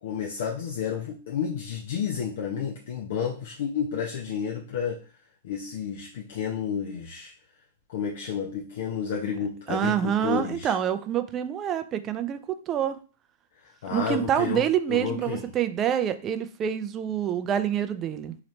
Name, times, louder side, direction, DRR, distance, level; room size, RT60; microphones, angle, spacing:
voice 1, 0.0-5.0 5.4-7.3 7.9-10.7 13.6-14.6 14.9-15.4, left 7 dB, 65° left, -1 dB, 0.7 m, -31 dB
voice 2, 9.7-13.0 13.9-18.4, right 9 dB, 25° right, 10 dB, 0.4 m, -27 dB
3.9 x 3.0 x 3.1 m, 0.38 s
hypercardioid pair, 135°, 0 cm